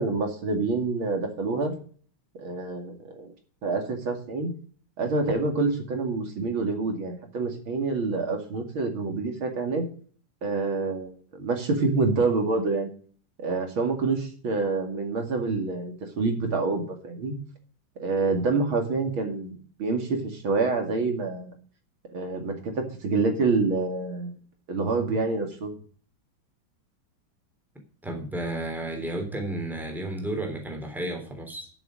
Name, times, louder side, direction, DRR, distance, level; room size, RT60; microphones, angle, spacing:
voice 1, 0.0-1.7 2.3-3.3 3.6-4.5 5.0-9.9 10.4-12.9 13.4-17.4 18.0-19.5 19.8-21.5 22.1-24.3 24.7-25.7, right 3 dB, 75° right, 4 dB, 3.1 m, -27 dB
voice 2, 28.0-31.7, right 1 dB, ahead, 3 dB, 3.2 m, -32 dB
12.5 x 7.3 x 6.3 m, 0.43 s
omnidirectional pair, 2.3 m